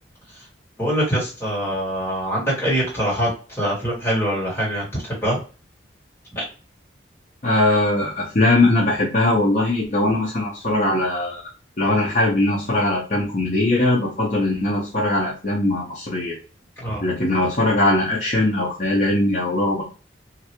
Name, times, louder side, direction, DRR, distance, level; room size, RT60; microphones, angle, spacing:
voice 1, 0.8-5.4 6.3-6.4 16.8-17.1, equal, 15° left, -7 dB, 1.6 m, -24 dB
voice 2, 7.4-11.4 11.8-16.3 17.0-19.8, left 2 dB, 40° left, -4 dB, 0.7 m, -20 dB
3.3 x 2.6 x 2.8 m, 0.35 s
head